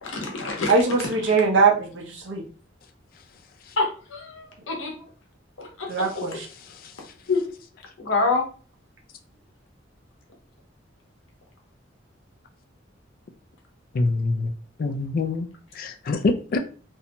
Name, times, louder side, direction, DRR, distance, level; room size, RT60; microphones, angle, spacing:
voice 1, 0.0-0.7 3.8-4.9 5.6-6.2 7.3-7.4 8.0-8.4, left 3 dB, 85° left, 0.8 m, -26 dB
voice 2, 0.7-2.4 5.9-6.5, right 4 dB, 70° right, 0.8 m, -21 dB
voice 3, 13.9-14.5 14.8-15.5 15.7-16.6, left 3 dB, 50° left, 0.4 m, -24 dB
2.6 x 2.1 x 2.9 m
head